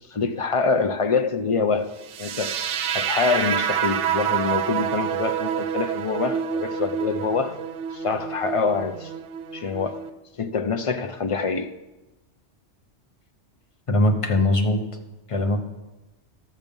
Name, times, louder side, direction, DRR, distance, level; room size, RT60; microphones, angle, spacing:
voice 1, 0.1-2.6 2.9-7.6 7.9-9.1 9.5-10.0 10.4-11.7, left 5 dB, 50° left, 0.4 m, -25 dB
sound 1, 2.1-10.1, right 9 dB, 80° right, 0.9 m, -28 dB
voice 2, 13.9-14.9 15.3-15.7, left 1 dB, 30° left, 0.9 m, -21 dB
12.5 x 7.2 x 5.3 m
omnidirectional pair, 1.2 m